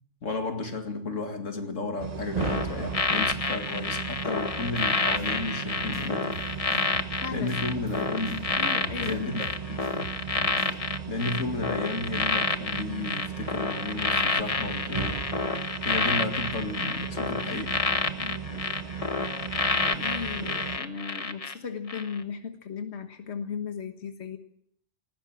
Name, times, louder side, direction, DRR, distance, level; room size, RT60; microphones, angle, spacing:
voice 1, 0.2-6.4 7.1-8.5 9.0-9.8 11.1-15.2 15.8-17.8, left 3 dB, 90° left, 2.6 m, -33 dB
sound 1, 2.0-20.8, right 7 dB, 35° right, 0.9 m, -36 dB
sound 2, 2.4-21.5 21.9-22.2, left 3 dB, 30° left, 1.2 m, -29 dB
sound 3, 4.8-10.8, right 2 dB, 70° right, 3.1 m, -44 dB
voice 2, 6.9-7.7 8.6-9.4 18.2-18.9 19.8-24.4, left 6 dB, 60° left, 1.7 m, -37 dB
19.5 x 16.0 x 8.8 m
omnidirectional pair, 1.3 m